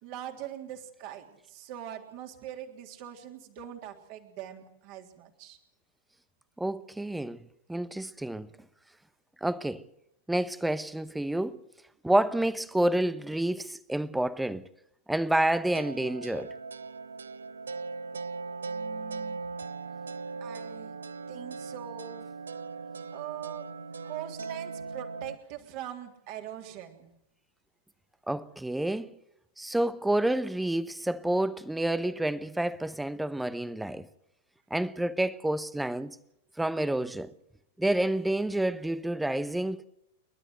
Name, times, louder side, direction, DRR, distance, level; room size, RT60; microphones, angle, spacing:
voice 1, 0.0-5.6 18.6-19.4 20.4-21.0 21.3-22.3 23.1-27.1, right 11 dB, 45° right, 3.4 m, -42 dB
voice 2, 6.6-7.4 7.7-8.5 9.4-9.8 10.3-11.6 12.0-14.7 15.1-16.5 28.3-29.1 29.6-34.1 34.7-36.2 36.6-37.3 37.8-39.8, right 1 dB, 5° right, 0.9 m, -29 dB
sound 1, 15.7-25.4, right 4 dB, 75° right, 0.8 m, -39 dB
29.0 x 12.5 x 7.9 m
figure-of-eight pair, 95°, 0 cm